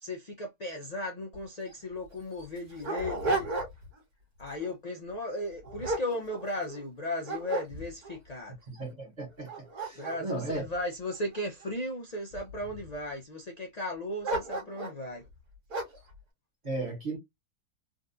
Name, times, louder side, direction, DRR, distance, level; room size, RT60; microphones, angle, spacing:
voice 1, 0.0-3.5 4.4-8.6 10.0-15.2, left 1 dB, 50° left, 0.4 m, -36 dB
Dog, 1.3-1.4 1.7-1.8 2.4-4.0 4.4-4.7 5.3-6.8 7.2-8.2 8.8-8.9 9.3-11.7 12.3-12.9 14.2-15.0 15.7-16.1, right 2 dB, 70° right, 1.9 m, -35 dB
voice 2, 8.7-10.6 16.6-17.2, right 2 dB, 30° right, 1.1 m, -36 dB
3.8 x 2.4 x 2.6 m
omnidirectional pair, 1.7 m